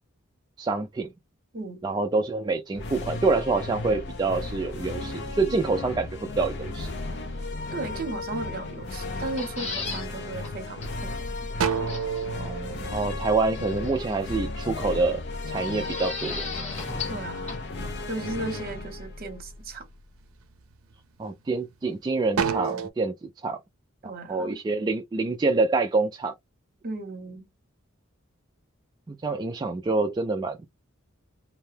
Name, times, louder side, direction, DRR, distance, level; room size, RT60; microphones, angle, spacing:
voice 1, 0.6-1.1 1.8-6.1 6.4-6.9 12.4-15.2 15.5-16.5 21.2-23.6 24.3-26.3 29.1-30.7, right 3 dB, 20° right, 0.3 m, -26 dB
sound 1, 2.7-20.2, left 2 dB, 55° left, 0.6 m, -35 dB
sound 2, 4.6-6.5 7.0-7.7 8.2-8.8 9.2-10.1 10.6-10.7 11.1-14.0 14.3-16.6 17.0-18.0 18.4-19.0 19.5-19.8 20.2-21.9 22.2-22.9, right 7 dB, 85° right, 0.5 m, -32 dB
voice 2, 7.7-11.1 17.1-17.5 18.1-19.9 24.0-24.6 26.8-27.5, right 2 dB, 45° right, 0.9 m, -35 dB
sound 3, 9.2-10.1 10.4-10.5 10.8-10.9 11.9-12.3 13.5-14.2 15.6-17.2 17.5-17.6, left 4 dB, 30° left, 1.4 m, -35 dB
2.7 x 2.2 x 3.2 m
head